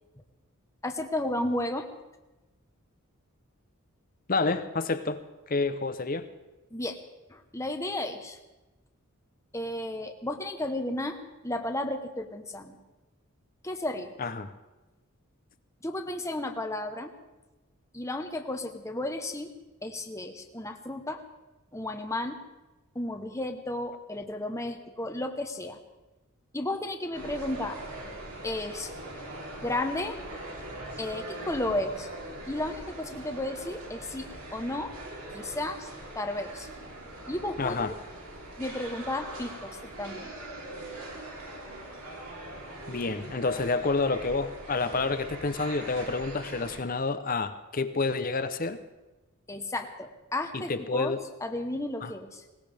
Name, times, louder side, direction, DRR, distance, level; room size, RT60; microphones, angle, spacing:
voice 1, 0.8-1.9 6.7-7.0 7.3-8.4 9.5-11.2 11.4-12.8 13.6-14.1 15.8-17.1 17.9-19.5 19.8-21.2 21.7-22.4 22.9-25.8 26.5-27.8 28.4-28.9 29.6-30.2 31.0-32.1 32.5-34.9 35.3-35.9 36.1-36.7 37.3-37.9 38.6-40.3 49.5-51.1 51.4-52.4, left 1 dB, 15° left, 6 dB, 1.1 m, -33 dB
voice 2, 4.3-5.2 5.5-6.3 14.2-14.5 37.6-37.9 42.9-48.8 50.5-51.2 52.0-52.1, left 3 dB, 40° left, 11 dB, 0.8 m, -29 dB
sound 1, 27.1-46.8, right 1 dB, 80° right, 3.7 m, -42 dB
20.5 x 19.0 x 3.5 m, 1.1 s
head